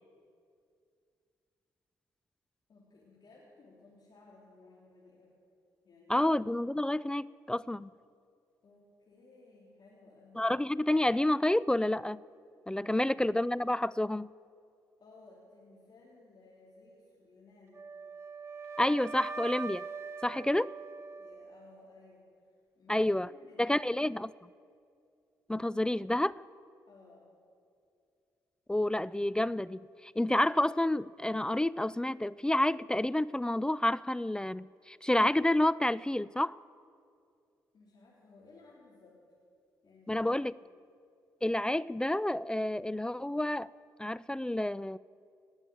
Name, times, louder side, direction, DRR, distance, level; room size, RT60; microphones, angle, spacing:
voice 1, 2.7-5.4 5.8-6.3 8.6-10.5 12.9-13.3 15.0-17.8 20.7-20.8 21.2-24.0 26.9-27.3 37.7-39.2 39.8-40.3 40.6-40.7, left 3 dB, 50° left, 3.6 m, -58 dB
voice 2, 6.1-7.9 10.4-12.2 12.7-14.3 18.8-19.9 20.2-20.7 22.9-23.3 23.6-24.3 25.5-26.4 28.7-36.6 40.1-40.5 41.4-43.7 44.0-45.0, left 1 dB, 10° left, 0.3 m, -29 dB
Wind instrument woodwind instrument, 17.7-21.8, right 4 dB, 30° right, 1.7 m, -42 dB
19.0 x 7.2 x 9.1 m
hypercardioid pair, 45°, 9 cm